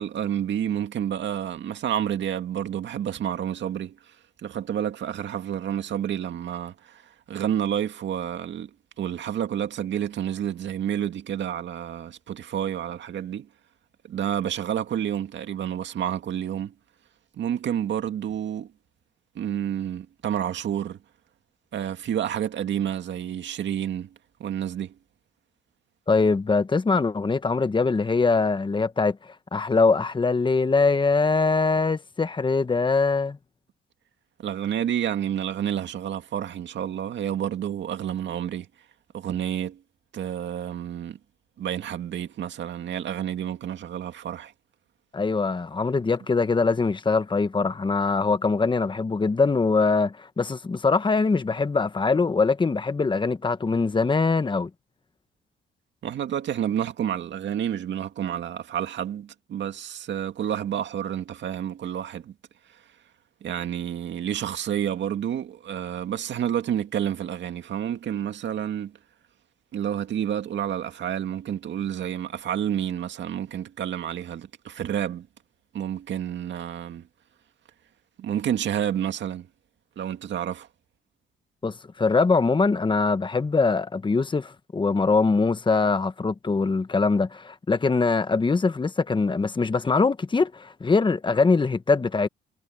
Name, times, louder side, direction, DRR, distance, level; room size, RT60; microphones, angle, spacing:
voice 1, 0.0-4.1 4.4-7.0 7.3-8.7 9.0-13.5 14.1-16.7 17.3-18.7 19.4-21.0 21.7-24.1 24.4-24.9 34.4-38.7 39.1-39.8 40.1-41.2 41.6-44.5 56.0-62.3 63.4-68.9 69.7-75.3 75.7-77.0 78.2-79.5 80.0-80.7, right 10 dB, 65° right, 2.2 m, -29 dB
voice 2, 26.1-33.4 45.1-54.7 81.6-92.3, left 4 dB, 25° left, 1.3 m, -23 dB
cardioid pair, 90°, 20 cm